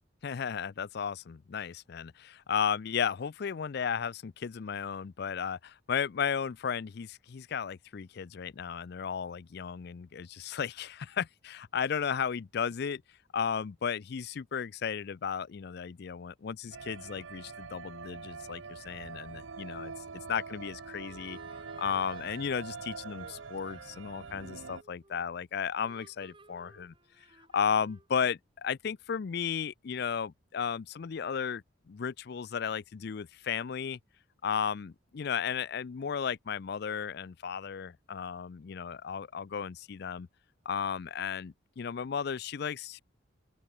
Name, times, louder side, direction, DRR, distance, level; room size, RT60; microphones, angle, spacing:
voice 1, 0.2-13.0 13.3-19.9 20.3-21.4 21.8-26.9 27.5-34.0 34.4-40.3 40.7-43.0, left 7 dB, 55° left, 0.4 m, -34 dB
sound 1, 16.7-24.8, right 5 dB, 75° right, 0.8 m, -44 dB
sound 2, 21.1-25.4 25.8-28.2, right 2 dB, 25° right, 3.8 m, -57 dB
open air
head